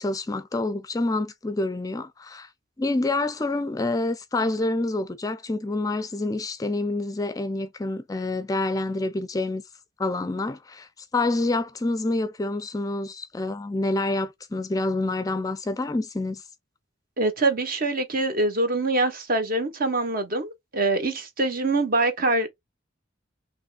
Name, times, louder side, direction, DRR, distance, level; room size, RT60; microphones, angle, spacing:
voice 1, 0.0-2.5 2.8-9.6 10.0-16.4, left 2 dB, 20° left, 0.4 m, -27 dB
voice 2, 17.2-22.5, right 2 dB, 50° right, 1.0 m, -24 dB
5.3 x 3.1 x 2.3 m
head